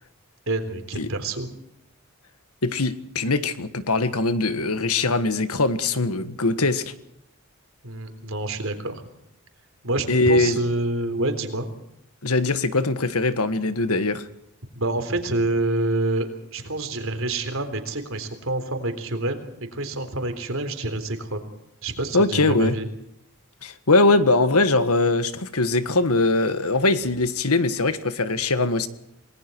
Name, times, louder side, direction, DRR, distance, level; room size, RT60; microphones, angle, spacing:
voice 1, 0.5-1.5 7.8-9.0 9.8-11.7 14.8-19.5 19.7-21.5 21.8-22.9, right 2 dB, 65° right, 3.7 m, -27 dB
voice 2, 2.6-6.9 10.1-10.6 12.2-14.3 22.1-22.7 23.6-28.9, left 2 dB, 85° left, 1.6 m, -21 dB
28.5 x 19.5 x 4.7 m
head